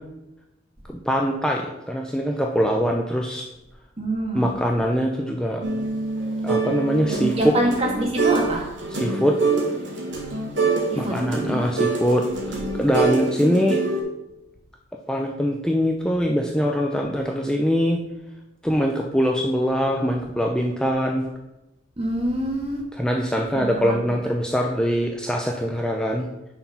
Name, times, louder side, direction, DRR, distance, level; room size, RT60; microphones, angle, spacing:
voice 1, 0.9-3.5 4.3-5.7 6.4-7.3 8.9-9.4 11.0-13.8 15.1-18.0 18.6-21.2 23.0-26.3, equal, 5° left, 1 dB, 0.5 m, -23 dB
voice 2, 4.0-4.5 7.1-8.6 10.9-11.2 22.0-22.8 23.5-24.0, right 1 dB, 30° right, 0 dB, 1.7 m, -25 dB
sound 1, 5.6-8.5 8.8-14.0, right 4 dB, 80° right, 2.1 m, -25 dB
9.2 x 4.6 x 5.6 m, 0.96 s
head